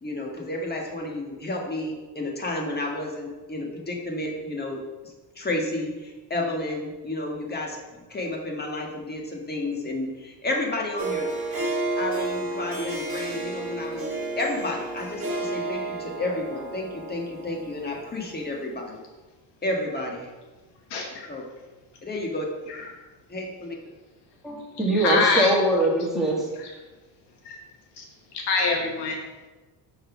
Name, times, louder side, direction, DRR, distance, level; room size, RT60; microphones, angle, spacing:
voice 1, 0.0-4.8 5.3-7.8 8.1-11.3 12.0-19.0 19.6-20.3 21.3-21.4 22.0-22.4 23.3-23.8, left 2 dB, 25° left, 0 dB, 1.5 m, -31 dB
Harp, 11.0-18.5, right 2 dB, 35° right, 1.8 m, -31 dB
voice 2, 20.9-21.3 22.7-22.9 24.9-25.6 26.6-26.7 27.4-27.6 28.0-28.1 28.3-29.2, left 3 dB, 75° left, 1 dB, 1.3 m, -25 dB
voice 3, 24.4-26.4, right 1 dB, ahead, -4 dB, 2.0 m, -22 dB
5.4 x 4.0 x 5.9 m, 1.2 s
cardioid pair, 85°, 41 cm